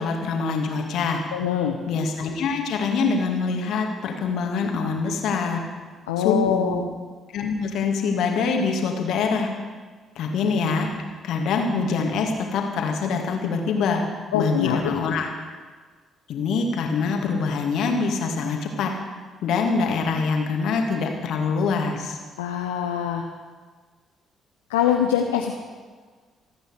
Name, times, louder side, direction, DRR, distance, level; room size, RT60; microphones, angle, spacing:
voice 1, 0.0-1.2 1.9-5.6 6.2-6.8 7.3-9.5 10.2-10.9 11.2-14.0 14.3-15.3 16.3-18.9 19.4-22.2, left 4 dB, 60° left, 2 dB, 2.3 m, -24 dB
voice 2, 1.3-1.8 6.1-6.9 14.3-14.8 22.4-23.2 24.7-25.5, left 9 dB, 75° left, 3 dB, 0.8 m, -23 dB
27.5 x 9.3 x 5.0 m, 1.5 s
figure-of-eight pair, 45°, 0 cm